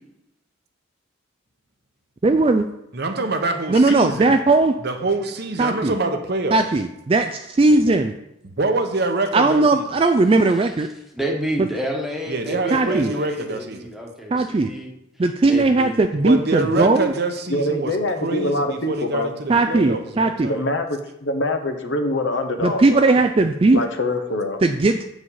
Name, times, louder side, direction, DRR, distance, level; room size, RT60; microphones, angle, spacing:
voice 1, 2.2-2.7 3.7-4.7 5.6-5.9 6.5-8.1 9.3-10.9 12.7-13.1 14.3-14.7 15.2-17.1 19.5-20.5 22.6-23.8 24.6-25.0, right 3 dB, 25° right, 6 dB, 0.3 m, -18 dB
voice 2, 2.9-4.3 4.8-6.6 8.6-9.8 12.3-13.8 16.2-18.0 18.2-20.6, right 2 dB, 50° right, 6 dB, 0.9 m, -25 dB
voice 3, 10.5-10.9 11.1-14.9 15.5-16.0, equal, ahead, 0 dB, 1.2 m, -29 dB
voice 4, 17.5-19.3 20.4-23.1 23.7-24.6, left 1 dB, 65° left, 7 dB, 0.9 m, -24 dB
8.1 x 5.1 x 5.5 m, 0.84 s
head